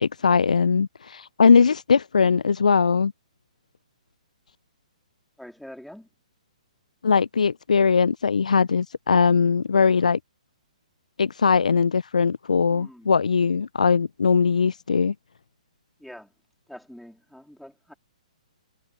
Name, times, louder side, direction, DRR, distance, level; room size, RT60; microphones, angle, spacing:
voice 1, 0.0-3.1 7.0-10.2 11.2-15.1, left 5 dB, 70° left, 0.4 m, -20 dB
voice 2, 5.4-6.1 12.7-13.1 16.0-16.3 16.7-17.9, equal, ahead, 3.5 m, -44 dB
figure-of-eight pair, 125°, 4 cm